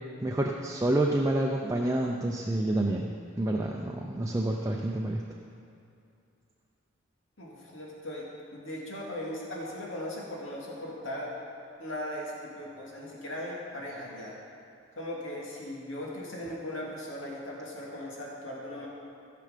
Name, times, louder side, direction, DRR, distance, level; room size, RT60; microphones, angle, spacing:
voice 1, 0.2-3.1 3.4-5.2, right 1 dB, 15° right, 0 dB, 0.5 m, -28 dB
voice 2, 7.4-11.4 11.8-14.3 14.9-18.9, left 1 dB, 90° left, -4 dB, 2.3 m, -38 dB
15.5 x 6.8 x 5.1 m, 2.5 s
head